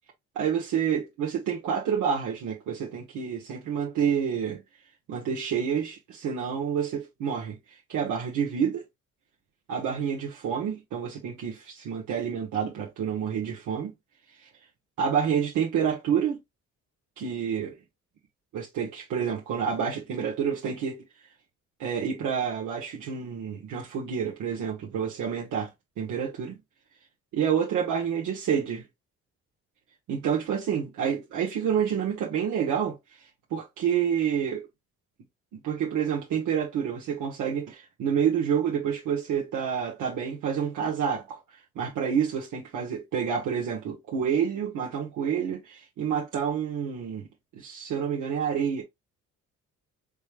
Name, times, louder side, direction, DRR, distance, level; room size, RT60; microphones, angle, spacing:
voice 1, 0.3-4.6 5.1-7.6 7.9-8.8 9.7-13.9 15.0-16.4 17.2-17.8 18.5-21.0 21.8-25.7 26.0-26.6 27.3-28.8 30.1-33.0 33.5-34.7 35.5-41.4 41.7-47.3 47.5-48.8, right 7 dB, 80° right, 1.4 m, -28 dB
5.3 x 3.4 x 2.4 m
cardioid pair, 90°, 30 cm